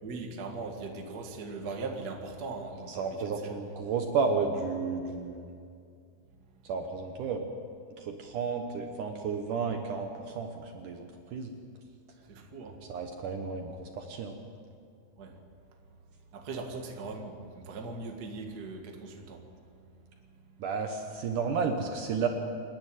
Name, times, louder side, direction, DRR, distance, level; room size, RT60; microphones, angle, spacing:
voice 1, 0.0-3.6 6.3-6.7 12.3-12.9 15.2-15.4 16.3-20.6, right 3 dB, 35° right, 2 dB, 1.7 m, -40 dB
voice 2, 2.9-5.4 6.6-7.4 8.0-11.5 12.9-14.3 20.6-22.3, right 5 dB, 65° right, 4 dB, 2.4 m, -32 dB
28.0 x 10.5 x 9.2 m, 2.3 s
omnidirectional pair, 4.4 m